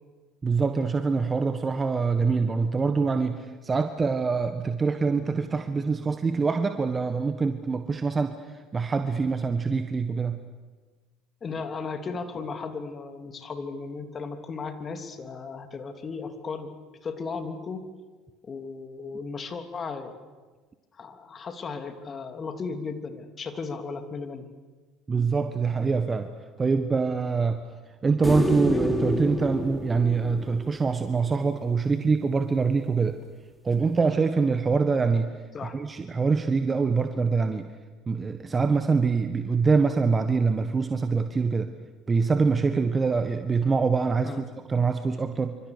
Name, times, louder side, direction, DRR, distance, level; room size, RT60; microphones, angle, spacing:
voice 1, 0.4-8.4 8.7-10.4 25.1-26.3 26.6-27.6 28.0-33.2 33.6-35.3 35.7-37.7 38.1-41.7 42.1-45.6, right 4 dB, 25° right, 8 dB, 1.6 m, -24 dB
voice 2, 11.4-16.7 17.0-17.8 18.4-20.1 20.9-24.5 35.5-35.8 44.2-44.5, left 4 dB, 35° left, 7 dB, 3.2 m, -35 dB
sound 1, 28.2-31.5 34.1-34.2, left 1 dB, 10° left, 3.8 m, -29 dB
27.5 x 26.0 x 6.8 m, 1.3 s
hypercardioid pair, 65°, 0 cm